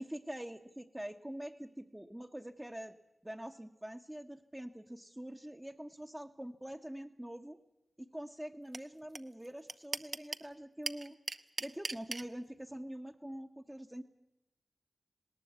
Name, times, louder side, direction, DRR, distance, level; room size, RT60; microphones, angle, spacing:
voice 1, 0.0-2.9 3.2-7.6 8.0-11.2 11.6-14.0, right 1 dB, 15° right, 1 dB, 1.0 m, -45 dB
sound 1, 8.7-8.8 9.2-9.3 9.4-10.5 10.9-12.2, right 3 dB, 55° right, 0.9 m, -37 dB
20.0 x 18.0 x 8.2 m, 0.92 s
cardioid pair, 45°, 0 cm